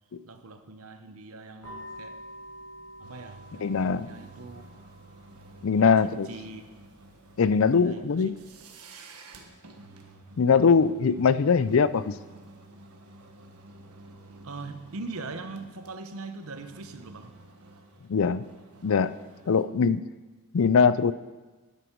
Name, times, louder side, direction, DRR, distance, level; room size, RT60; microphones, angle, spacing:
voice 1, 0.2-2.2 3.0-4.7 5.8-6.7 7.8-8.3 14.4-17.3, right 3 dB, 70° right, 9 dB, 0.9 m, -41 dB
sound 1, 1.6-8.6, equal, 85° left, 4.7 m, -49 dB
sound 2, 3.0-19.6, right 3 dB, 90° right, 1.2 m, -51 dB
voice 2, 3.6-4.1 5.6-6.3 7.4-8.3 10.4-12.2 18.1-18.5 18.8-19.1 19.5-20.0 20.5-21.1, left 5 dB, 60° left, 16 dB, 0.4 m, -22 dB
12.0 x 10.0 x 4.6 m, 1.2 s
head